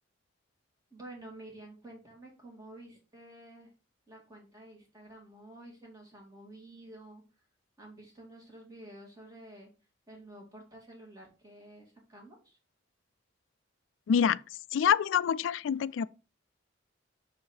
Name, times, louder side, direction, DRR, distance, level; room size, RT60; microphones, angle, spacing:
voice 1, 0.9-3.7 4.1-7.2 7.8-9.7 10.1-12.6, right 1 dB, 20° right, 2.5 m, -50 dB
voice 2, 14.1-14.4 14.7-16.1, left 8 dB, 75° left, 0.3 m, -26 dB
6.2 x 4.8 x 4.4 m
head